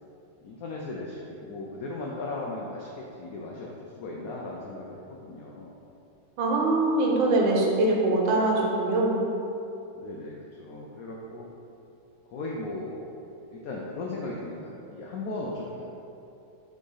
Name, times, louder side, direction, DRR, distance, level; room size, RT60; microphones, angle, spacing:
voice 1, 0.4-5.7 10.0-10.3 10.6-11.5 12.3-13.1 13.5-15.8, left 2 dB, 70° left, -2 dB, 0.9 m, -37 dB
voice 2, 6.4-9.2, right 2 dB, 85° right, -2 dB, 1.6 m, -23 dB
6.2 x 3.9 x 3.9 m, 2.7 s
omnidirectional pair, 2.0 m